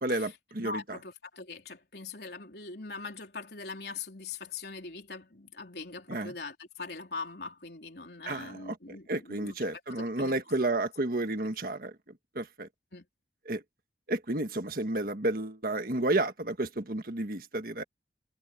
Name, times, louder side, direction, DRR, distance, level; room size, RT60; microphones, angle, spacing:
voice 1, 0.0-1.0 6.1-6.3 8.3-11.9 12.4-12.7 13.5-13.6 14.1-17.8, right 2 dB, 50° right, 1.6 m, -31 dB
voice 2, 0.6-9.6 10.0-10.4 12.9-13.1, left 4 dB, 65° left, 3.8 m, -42 dB
head